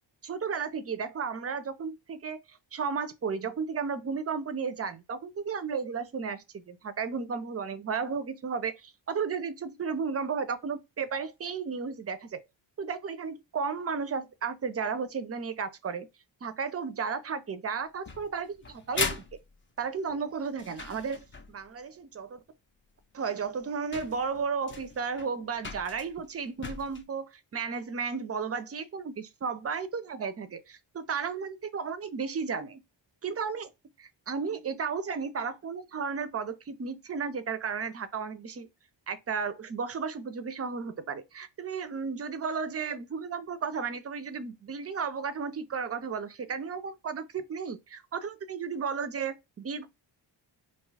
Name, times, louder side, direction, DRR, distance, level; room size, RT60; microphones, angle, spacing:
voice 1, 0.2-12.4 12.8-16.1 16.4-19.2 19.8-22.4 23.1-32.8 33.2-33.7 34.0-38.7 39.1-49.9, right 5 dB, 35° right, 0.4 m, -34 dB
sound 1, 18.0-21.7 23.0-23.1 23.6-23.7 23.9-27.0, left 4 dB, 25° left, 0.5 m, -38 dB
2.7 x 2.3 x 3.2 m
cardioid pair, 95°, 46 cm